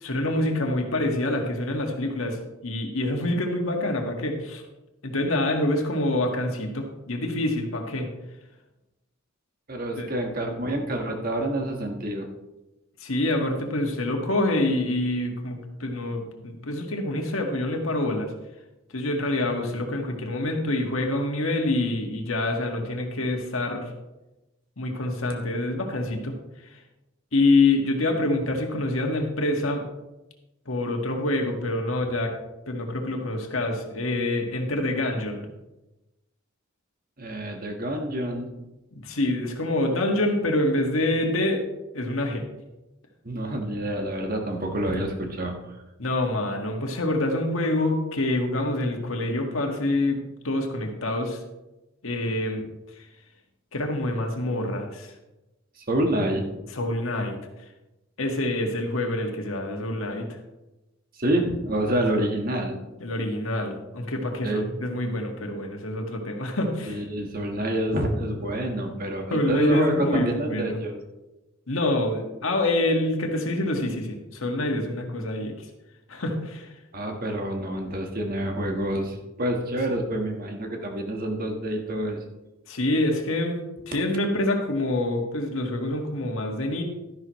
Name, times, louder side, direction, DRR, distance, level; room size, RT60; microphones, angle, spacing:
voice 1, 0.0-4.6 5.0-8.1 10.0-10.1 13.0-18.3 18.9-23.9 24.8-26.3 27.3-29.8 30.7-32.3 32.7-35.5 38.9-41.6 41.9-42.4 46.0-51.4 52.0-52.7 53.7-55.1 56.7-57.4 58.2-60.4 63.0-67.0 69.3-70.8 71.7-75.7 76.1-76.7 82.7-86.8, left 1 dB, 80° left, 2 dB, 1.7 m, -26 dB
voice 2, 9.7-12.3 37.2-38.5 43.2-45.8 55.8-56.4 61.2-62.8 64.4-64.7 66.9-71.0 76.9-82.2, right 1 dB, 45° right, 3 dB, 1.5 m, -27 dB
12.0 x 11.0 x 3.1 m, 1.0 s
head